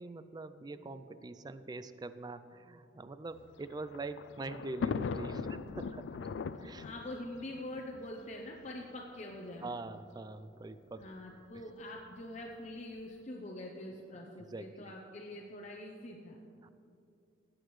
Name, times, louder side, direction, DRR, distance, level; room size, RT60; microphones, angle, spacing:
voice 1, 0.0-6.1 6.6-6.9 9.6-11.0 14.5-14.9 16.6-16.7, right 3 dB, 20° right, 12 dB, 0.3 m, -44 dB
Thunder, 3.4-8.7 9.5-9.6 9.8-9.9 11.0-11.3, left 5 dB, 80° left, 0.3 m, -39 dB
voice 2, 6.8-9.8 11.0-16.4, left 1 dB, 40° left, -1 dB, 0.7 m, -44 dB
17.5 x 8.7 x 3.2 m, 2.5 s
head